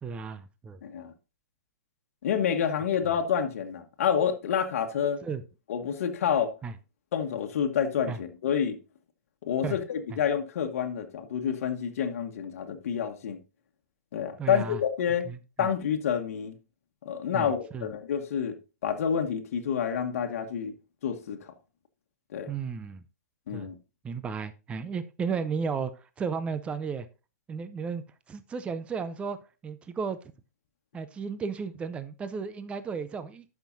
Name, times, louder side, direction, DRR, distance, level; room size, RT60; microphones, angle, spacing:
voice 1, 0.0-0.8 5.2-5.4 6.6-6.7 8.1-8.2 9.6-9.8 10.1-10.2 14.4-14.8 15.2-15.7 17.3-17.9 22.5-23.0 23.5-23.7 24.0-27.1 27.5-29.4 29.6-30.2 30.9-33.4, right 5 dB, 15° right, 0.5 m, -34 dB
voice 2, 0.8-1.1 2.2-5.2 5.7-6.5 7.1-8.8 9.4-13.4 14.1-15.3 15.6-16.5 17.0-18.5 18.8-20.7 21.0-21.5 22.3-22.5 23.5-23.8, left 8 dB, 60° left, 1.3 m, -28 dB
12.5 x 5.8 x 2.7 m
hypercardioid pair, 130°, 9 cm